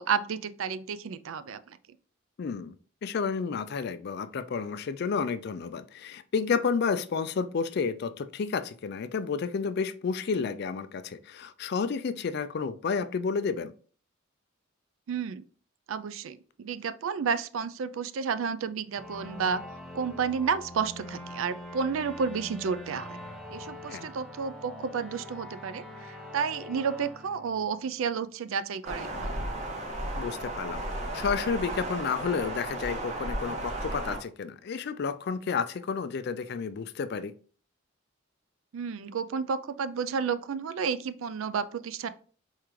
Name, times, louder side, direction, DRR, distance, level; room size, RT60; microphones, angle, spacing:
voice 1, 0.0-1.8 15.1-15.4 15.9-19.6 19.9-23.2 23.5-29.4 38.7-42.1, right 6 dB, 80° right, 0.4 m, -31 dB
voice 2, 2.4-2.8 3.0-13.7 23.9-24.1 30.2-37.3, left 5 dB, 50° left, 0.3 m, -31 dB
sound 1, 19.0-28.3, left 1 dB, ahead, 0.8 m, -44 dB
sound 2, 28.8-34.2, right 1 dB, 35° right, 1.5 m, -34 dB
4.4 x 3.7 x 3.1 m
head